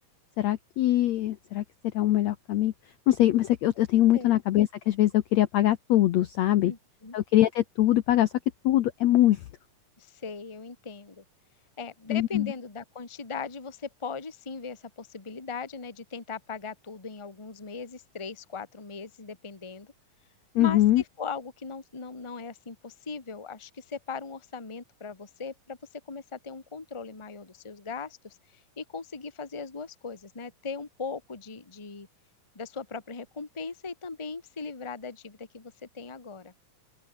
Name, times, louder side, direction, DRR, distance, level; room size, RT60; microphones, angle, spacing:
voice 1, 0.4-1.6 1.9-2.7 3.1-6.7 7.1-8.3 8.6-9.4 12.1-12.5 20.6-21.0, left 14 dB, 70° left, 1.7 m, -23 dB
voice 2, 6.6-7.1 10.0-11.2 11.8-19.9 20.6-20.8 21.2-25.8 26.1-32.1 32.5-36.5, left 5 dB, 15° left, 1.0 m, -39 dB
open air
omnidirectional pair, 4.1 m